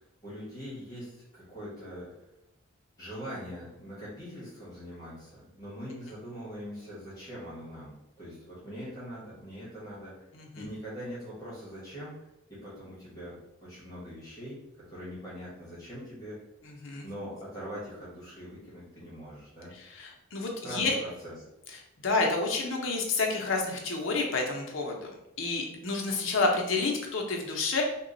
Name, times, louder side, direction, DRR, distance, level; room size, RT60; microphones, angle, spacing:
voice 1, 0.0-2.1 3.0-10.3 10.5-14.6 14.9-16.4 17.0-19.7 20.6-21.3, equal, 20° left, -8 dB, 1.2 m, -42 dB
voice 2, 16.7-17.0 19.9-20.9 22.0-25.1 25.4-27.8, left 3 dB, 70° left, 1 dB, 0.7 m, -29 dB
3.0 x 2.3 x 3.8 m, 0.88 s
head